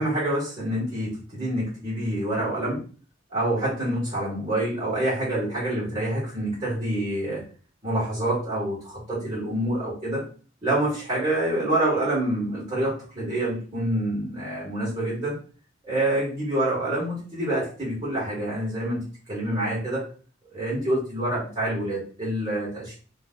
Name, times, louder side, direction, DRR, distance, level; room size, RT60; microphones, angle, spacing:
voice 1, 0.0-2.8 3.3-7.4 7.8-10.2 10.6-15.3 15.8-19.0 19.3-20.0 20.5-22.9, right 1 dB, 30° right, -8 dB, 2.5 m, -27 dB
3.8 x 3.5 x 3.9 m, 0.40 s
head